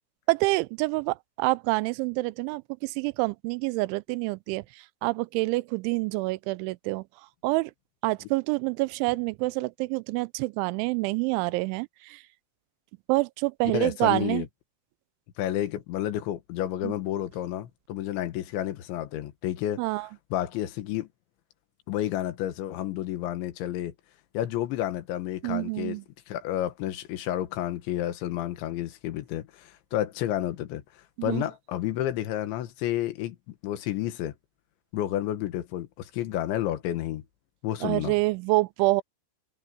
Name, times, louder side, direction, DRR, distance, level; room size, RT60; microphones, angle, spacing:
voice 1, 0.3-4.6 5.0-7.0 7.4-7.7 8.0-12.2 13.1-14.5 16.8-16.9 19.8-20.1 25.4-26.0 31.2-31.4 37.8-39.0, right 23 dB, 90° right, 3.0 m, -27 dB
voice 2, 13.7-14.5 15.4-19.8 20.3-21.1 21.9-23.9 24.4-26.0 26.3-30.8 31.2-34.3 34.9-37.2 37.6-38.1, left 13 dB, 80° left, 3.7 m, -30 dB
omnidirectional pair, 5.3 m